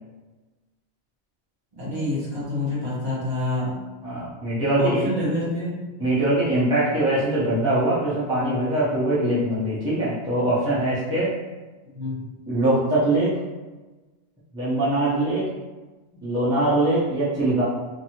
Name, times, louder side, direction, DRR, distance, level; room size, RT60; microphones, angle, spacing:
voice 1, 1.7-3.8 4.8-5.8 11.9-12.2, left 1 dB, 40° right, -9 dB, 1.3 m, -27 dB
voice 2, 4.0-5.1 6.0-11.3 12.5-13.3 14.5-15.5 16.2-17.6, right 1 dB, 5° right, -10 dB, 0.6 m, -22 dB
2.6 x 2.6 x 2.8 m, 1.2 s
omnidirectional pair, 1.2 m